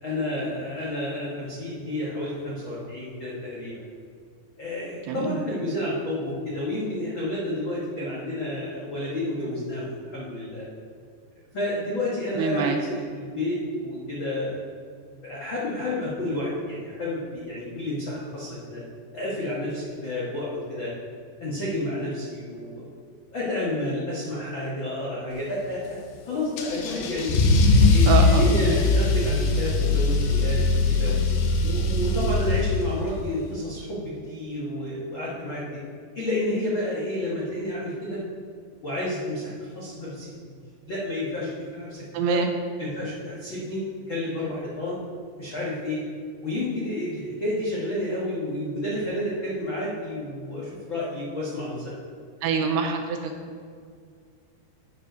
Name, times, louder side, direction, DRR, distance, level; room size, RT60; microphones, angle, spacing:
voice 1, 0.0-3.8 4.6-10.7 11.5-14.6 15.1-18.8 19.1-20.9 21.4-22.9 23.3-26.0 26.2-27.3 27.8-31.2 31.6-35.6 36.1-38.2 38.8-40.5 40.9-42.4 42.8-45.0 45.4-46.0 46.4-51.9, left 1 dB, 70° left, -7 dB, 1.1 m, -30 dB
voice 2, 5.1-5.4 12.4-12.8 28.1-28.8 42.1-42.5 52.4-53.3, right 5 dB, 80° right, 4 dB, 2.5 m, -25 dB
Car / Engine starting / Accelerating revving vroom, 26.6-33.1, left 3 dB, 85° left, 3.1 m, -21 dB
12.5 x 5.3 x 5.1 m, 2.1 s
omnidirectional pair, 5.0 m